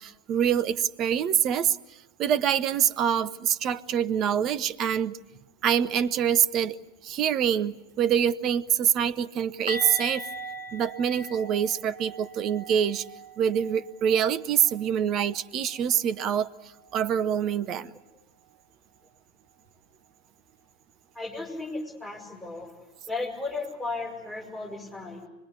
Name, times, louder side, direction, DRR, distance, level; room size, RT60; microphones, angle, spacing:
voice 1, 0.0-1.8 2.2-5.2 5.6-6.8 7.0-10.2 10.7-13.0 13.4-16.5 16.9-17.9, right 9 dB, 35° right, 14 dB, 0.8 m, -25 dB
sound 1, 9.7-15.5 15.7-16.0 16.3-16.5 19.7-19.8, equal, 85° right, 1.2 m, -41 dB
voice 2, 21.1-22.7 23.1-25.3, left 3 dB, 10° left, -1 dB, 6.5 m, -35 dB
25.0 x 21.5 x 8.4 m, 1.0 s
figure-of-eight pair, 90°, 0 cm